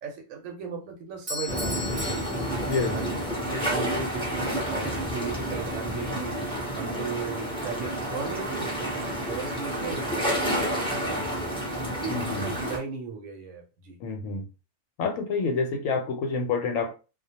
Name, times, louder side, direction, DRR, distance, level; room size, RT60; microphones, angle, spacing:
voice 1, 0.0-2.5 2.9-11.6 12.0-14.0, right 5 dB, 80° right, 1.0 m, -37 dB
Doorbell, 1.3-3.3, left 2 dB, 35° right, 0.8 m, -37 dB
sound 1, 1.5-12.8, equal, 5° left, 0.5 m, -30 dB
voice 2, 2.6-2.9 12.1-12.5 14.0-14.5 15.0-16.9, left 4 dB, 85° left, 1.0 m, -28 dB
2.3 x 2.1 x 2.8 m
omnidirectional pair, 1.4 m